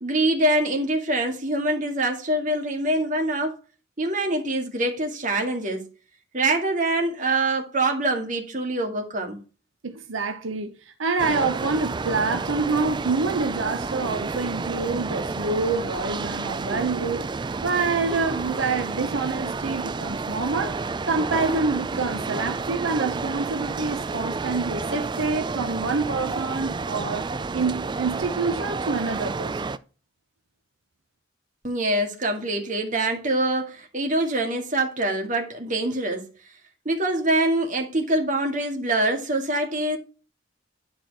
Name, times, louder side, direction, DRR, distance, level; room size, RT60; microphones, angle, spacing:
voice 1, 0.0-3.6 4.0-5.9 6.3-9.4 31.6-36.3 36.9-40.0, right 1 dB, 40° right, 2.0 m, -24 dB
voice 2, 9.8-17.3 17.6-20.8 21.1-29.6, right 4 dB, 90° right, 0.9 m, -27 dB
sound 1, 11.2-29.8, right 4 dB, 25° right, 0.4 m, -30 dB
10.5 x 4.5 x 4.7 m
head